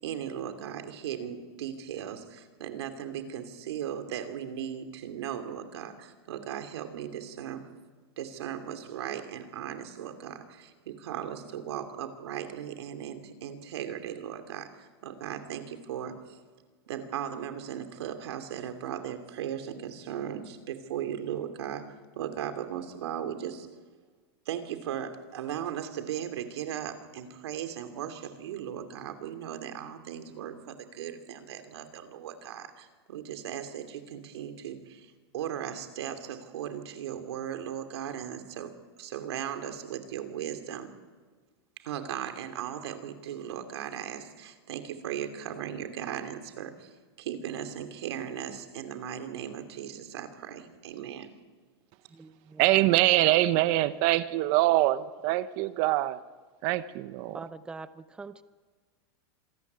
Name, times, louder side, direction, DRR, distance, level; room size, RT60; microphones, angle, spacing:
voice 1, 0.0-7.7 8.2-16.4 16.9-23.7 24.5-40.9 41.8-51.3, right 9 dB, 85° right, 7 dB, 2.8 m, -37 dB
voice 2, 52.6-56.2 56.6-57.4, right 16 dB, 40° right, 14 dB, 0.9 m, -24 dB
voice 3, 57.3-58.4, right 4 dB, 5° right, 13 dB, 0.6 m, -42 dB
26.0 x 14.5 x 9.6 m, 1.5 s
supercardioid pair, 165°, 13 cm